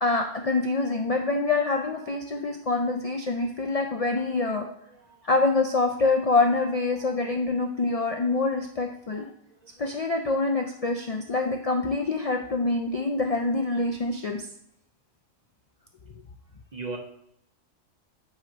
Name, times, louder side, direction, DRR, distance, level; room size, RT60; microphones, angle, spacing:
voice 1, 0.0-4.7 5.2-9.3 9.8-14.5, left 3 dB, 45° left, 3 dB, 0.5 m, -25 dB
voice 2, 4.9-5.2 7.0-7.2 9.1-9.2 9.6-9.9 16.7-17.0, right 3 dB, 40° right, 3 dB, 0.9 m, -39 dB
9.0 x 3.1 x 5.1 m, 0.74 s
omnidirectional pair, 1.2 m